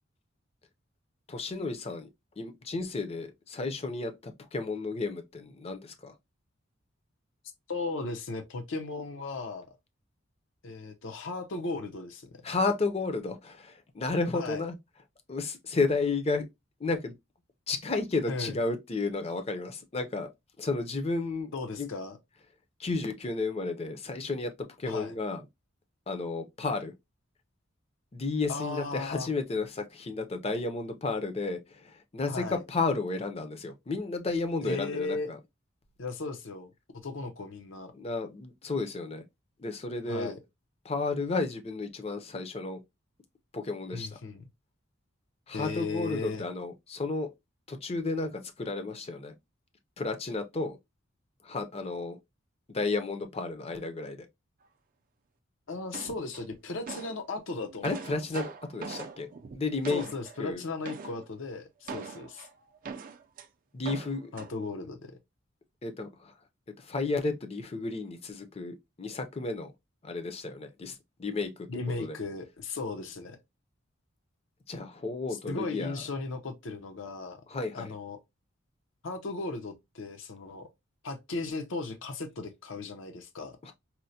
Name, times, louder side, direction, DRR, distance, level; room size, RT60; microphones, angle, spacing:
voice 1, 1.3-2.1 2.4-6.2 12.4-14.8 15.3-16.5 16.8-17.1 17.7-20.3 20.6-21.9 22.8-25.4 26.1-26.9 28.1-35.4 37.9-39.2 39.6-40.3 40.8-42.8 43.5-44.2 45.5-47.3 47.7-49.3 50.0-50.8 51.4-52.2 52.7-54.3 57.8-60.0 60.4-60.6 63.7-64.3 65.8-66.3 66.8-69.7 70.0-71.7 72.0-72.2 74.7-76.0 77.5-77.9 83.6-83.7, left 3 dB, 30° left, 0.5 m, -32 dB
voice 2, 7.7-9.7 10.6-12.3 14.3-14.6 18.3-18.5 21.5-22.2 24.9-25.1 28.5-29.3 32.2-32.6 34.6-35.3 36.0-36.7 37.0-37.9 40.1-40.4 43.9-44.4 45.5-46.4 55.7-58.2 59.9-62.5 64.3-65.2 71.7-73.4 75.5-77.4 77.7-78.2 79.0-80.7 81.0-83.5, left 3 dB, 75° left, 0.6 m, -36 dB
sound 1, 55.9-57.2 57.6-60.4 60.8-61.3 61.9-63.5 63.8-64.5, right 5 dB, 45° right, 0.4 m, -42 dB
4.3 x 2.1 x 2.6 m
head